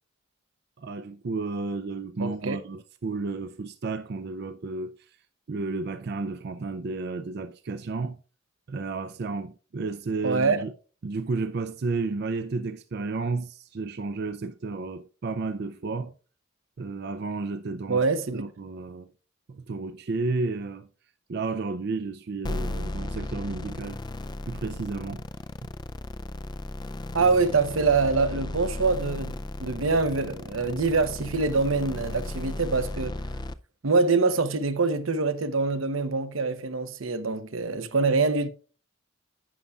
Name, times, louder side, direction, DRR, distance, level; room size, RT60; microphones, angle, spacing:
voice 1, 0.8-5.2 5.5-8.2 8.7-10.7 11.0-16.1 16.8-18.0 18.3-19.1 19.5-20.9 21.3-24.0 24.5-25.2, right 3 dB, 50° right, 0.4 m, -32 dB
voice 2, 2.2-2.6 10.2-10.6 17.9-18.4 27.1-33.2 33.8-38.5, right 4 dB, 80° right, 0.9 m, -25 dB
sound 1, 22.4-33.5, left 1 dB, 20° left, 0.4 m, -35 dB
11.0 x 8.3 x 2.4 m
head